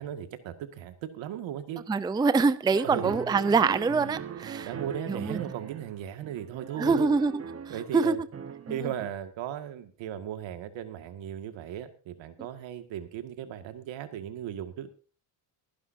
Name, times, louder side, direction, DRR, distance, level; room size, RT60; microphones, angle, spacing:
voice 1, 0.0-1.8 2.8-3.1 4.6-7.1 7.7-8.2 8.7-14.9, right 10 dB, 75° right, 2.0 m, -36 dB
voice 2, 1.9-4.7 5.1-5.4 6.8-7.4 7.9-8.1, right 4 dB, 10° right, 0.5 m, -24 dB
sound 1, 2.7-7.9 8.3-9.1, right 7 dB, 30° right, 1.1 m, -40 dB
22.5 x 11.0 x 2.7 m
cardioid pair, 135°, 46 cm